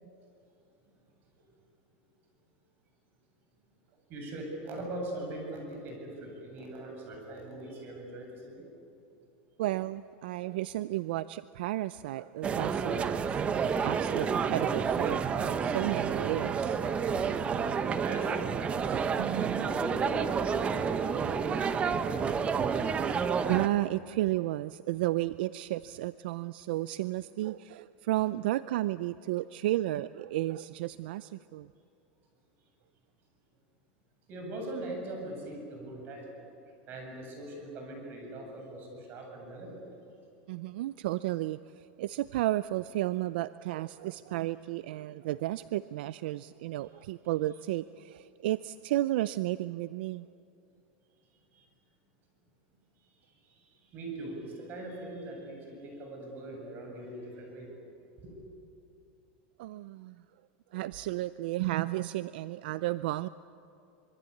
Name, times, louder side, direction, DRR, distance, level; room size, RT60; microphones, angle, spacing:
voice 1, 4.1-8.7 17.8-19.0 19.6-21.6 21.8-22.6 34.3-36.3 36.9-39.8 51.5-51.7 53.0-57.7 58.2-58.3, right 1 dB, 35° right, 2 dB, 8.0 m, -41 dB
voice 2, 9.6-16.8 19.2-19.7 23.5-31.7 40.5-50.3 59.6-60.2 60.7-63.3, right 16 dB, 75° right, 15 dB, 0.5 m, -33 dB
sound 1, 12.4-23.7, right 6 dB, 20° right, 1.1 m, -30 dB
25.5 x 23.5 x 8.5 m, 2.7 s
supercardioid pair, 145°, 5 cm